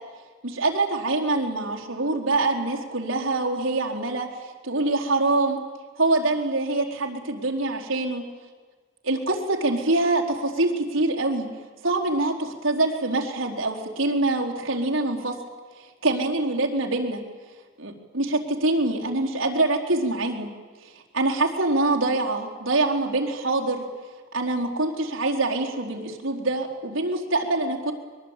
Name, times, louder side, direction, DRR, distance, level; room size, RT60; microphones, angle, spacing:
voice 1, 0.4-4.3 4.6-5.6 6.0-8.3 9.0-11.5 11.8-15.4 16.0-17.2 17.8-20.5 21.1-23.8 24.3-27.9, right 2 dB, 80° right, -1 dB, 4.4 m, -24 dB
23.5 x 23.0 x 9.2 m, 1.4 s
head